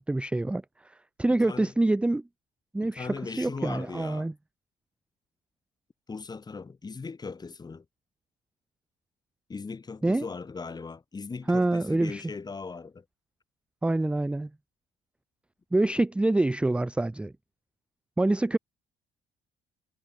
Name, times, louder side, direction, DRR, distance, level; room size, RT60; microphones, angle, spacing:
voice 1, 0.0-2.2 2.7-4.3 10.0-10.3 11.5-12.2 13.8-14.5 15.7-17.3 18.2-18.6, right 2 dB, 5° right, 0.4 m, -26 dB
voice 2, 1.3-1.7 2.8-4.3 6.1-7.8 9.5-13.0, left 4 dB, 25° left, 2.3 m, -39 dB
cardioid pair, 110°, 17 cm